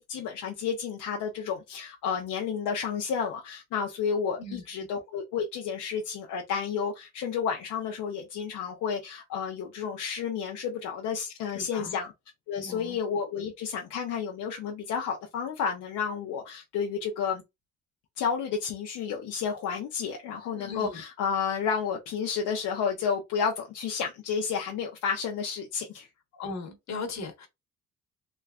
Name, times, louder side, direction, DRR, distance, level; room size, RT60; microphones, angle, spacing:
voice 1, 0.0-12.1 12.5-17.4 18.2-26.1, left 6 dB, 80° left, 0.7 m, -31 dB
voice 2, 11.5-12.0 12.6-13.0 20.5-21.0 26.3-27.5, left 3 dB, 65° left, 1.2 m, -38 dB
3.3 x 3.1 x 2.3 m
cardioid pair, 90°, 30 cm